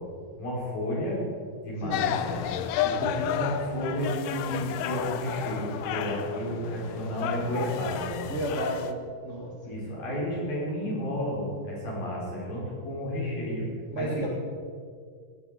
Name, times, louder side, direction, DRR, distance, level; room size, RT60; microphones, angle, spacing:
voice 1, 0.4-1.2 1.6-2.4 2.8-8.1 9.6-13.6 14.0-14.1, equal, 60° left, -5 dB, 6.8 m, -32 dB
sound 1, 1.9-8.9, left 10 dB, 80° left, 1.9 m, -32 dB
voice 2, 8.3-9.9 13.9-14.3, right 1 dB, 90° right, -2 dB, 0.6 m, -33 dB
17.0 x 14.0 x 5.2 m, 2.1 s
omnidirectional pair, 4.6 m